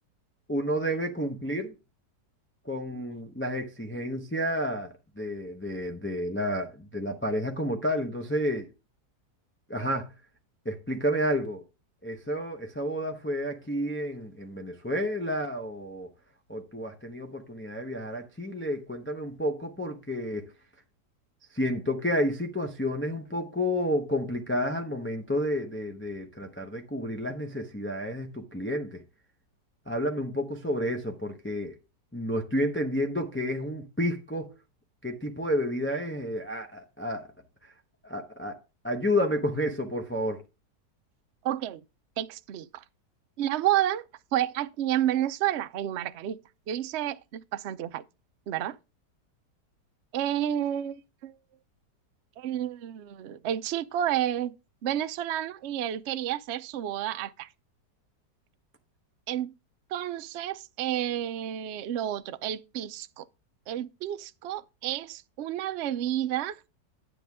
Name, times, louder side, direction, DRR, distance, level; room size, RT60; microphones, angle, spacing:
voice 1, 0.5-1.7 2.6-8.7 9.7-10.1 10.6-11.6 12.0-16.1 16.5-20.5 21.5-29.0 29.9-31.8 32.1-34.5 35.0-37.3 37.6-37.7 38.0-38.6 38.8-40.4, equal, 10° left, 0.6 m, -30 dB
voice 2, 41.4-41.8 42.2-42.8 43.4-44.0 44.3-46.4 46.7-48.0 48.5-48.8 50.1-51.3 52.4-54.5 54.8-57.5 59.3-59.5 59.9-63.2 63.7-66.6, right 11 dB, 85° right, 0.6 m, -30 dB
10.0 x 7.8 x 3.5 m
omnidirectional pair, 1.9 m